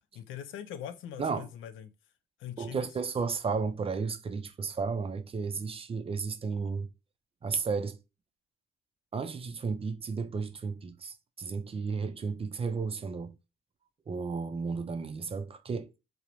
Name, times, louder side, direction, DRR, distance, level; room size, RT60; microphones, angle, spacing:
voice 1, 0.1-1.9 2.4-2.8, left 10 dB, 80° left, 0.4 m, -42 dB
voice 2, 2.6-6.9 7.4-8.0 9.1-13.4 14.1-16.0, right 5 dB, 30° right, 0.4 m, -33 dB
2.9 x 2.1 x 2.5 m
cardioid pair, 90°, 20 cm